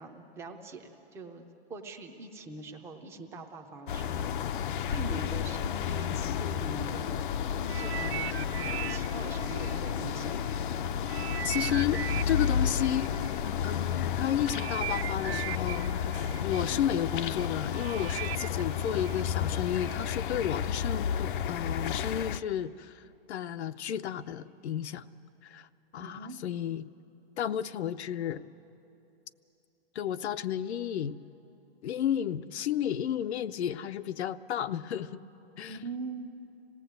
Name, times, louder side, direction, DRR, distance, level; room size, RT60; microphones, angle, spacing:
voice 1, 0.0-1.4 1.7-4.3 4.9-10.4 26.0-26.4 35.7-36.3, right 3 dB, 10° right, 4 dB, 0.6 m, -43 dB
sound 1, 3.9-22.4, left 8 dB, 50° left, 0.6 m, -32 dB
sound 2, 7.7-10.6 11.1-20.1 20.8-20.9, right 13 dB, 70° right, 0.7 m, -40 dB
voice 2, 11.4-13.1 13.6-23.0 23.3-25.0 25.4-25.7 25.9-26.9 27.4-28.4 29.9-31.2 31.8-35.2 35.6-35.8, left 10 dB, 85° left, 11 dB, 0.8 m, -32 dB
26.5 x 18.0 x 8.1 m, 2.9 s
hypercardioid pair, 170°, 32 cm